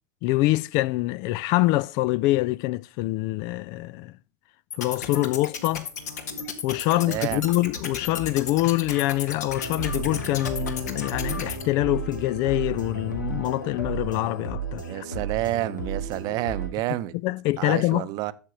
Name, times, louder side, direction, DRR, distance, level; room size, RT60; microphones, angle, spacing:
voice 1, 0.2-4.1 4.8-5.9 6.6-15.1 17.2-18.1, left 18 dB, 40° left, 0.3 m, -25 dB
sound 1, 4.7-11.6, left 6 dB, 65° left, 1.7 m, -34 dB
voice 2, 6.9-7.5 14.9-17.1 17.6-18.3, right 16 dB, 40° right, 0.7 m, -29 dB
sound 2, 9.5-16.7, right 4 dB, 90° left, 2.5 m, -33 dB
12.0 x 7.5 x 2.8 m
figure-of-eight pair, 90°, 10 cm